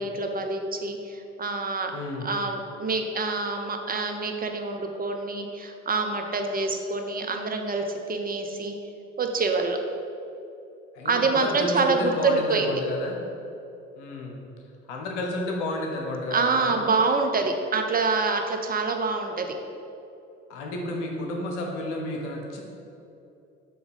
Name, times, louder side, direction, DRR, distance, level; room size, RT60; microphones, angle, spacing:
voice 1, 0.0-1.9 2.2-8.7 9.2-9.8 11.0-12.8 16.3-19.5, right 3 dB, 25° right, 4 dB, 0.8 m, -26 dB
voice 2, 1.9-2.3 10.9-13.2 14.0-14.4 14.9-16.8 20.5-22.6, left 2 dB, 80° left, 1 dB, 1.0 m, -31 dB
7.4 x 3.1 x 5.4 m, 2.8 s
hypercardioid pair, 50°, 35 cm